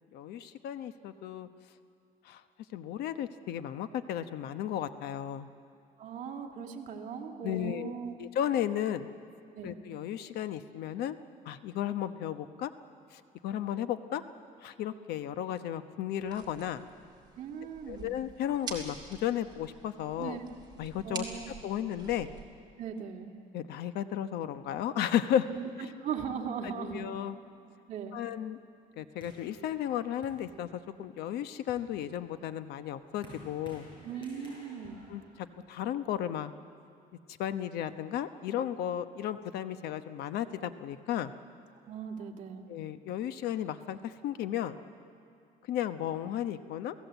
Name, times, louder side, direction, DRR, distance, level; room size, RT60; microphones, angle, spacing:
voice 1, 0.0-1.5 2.2-2.4 2.7-5.5 7.4-9.1 9.6-11.2 11.4-12.7 13.1-14.2 14.6-16.8 17.9-20.4 20.8-21.2 21.6-22.3 23.5-25.5 25.8-25.9 26.6-27.4 28.1-28.6 29.0-33.9 35.1-36.5 37.4-41.3 42.7-44.8 45.6-46.9, left 10 dB, 80° left, 11 dB, 1.0 m, -34 dB
voice 2, 6.0-8.2 9.5-9.8 17.4-18.1 20.2-20.4 21.0-21.5 22.8-23.3 25.5-25.7 26.0-27.1 27.9-28.2 34.0-35.0 41.9-42.7, right 7 dB, 50° right, 1 dB, 2.3 m, -39 dB
sound 1, 16.2-22.4, right 5 dB, 25° right, 3.0 m, -47 dB
sound 2, 29.2-31.0 31.5-36.1, left 1 dB, 30° left, 6.9 m, -54 dB
29.5 x 17.5 x 8.2 m, 2.5 s
cardioid pair, 165°, 16 cm